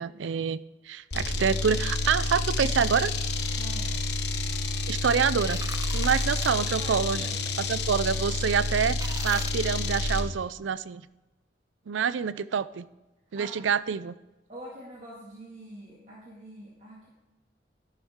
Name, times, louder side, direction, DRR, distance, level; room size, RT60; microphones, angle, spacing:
voice 1, 0.0-3.1 4.9-5.6 5.9-7.3 7.7-11.0 11.9-12.9 13.3-14.2, right 6 dB, 85° right, 17 dB, 0.4 m, -27 dB
sound 1, 1.1-10.3, left 2 dB, 65° left, 1.1 m, -29 dB
voice 2, 3.6-4.1 6.7-7.4 13.3-13.5 14.5-17.1, right 1 dB, 40° right, -5 dB, 2.2 m, -45 dB
sound 2, 5.2-6.5 9.0-9.5, right 4 dB, 20° right, 0.5 m, -40 dB
12.5 x 12.0 x 3.7 m, 1.1 s
head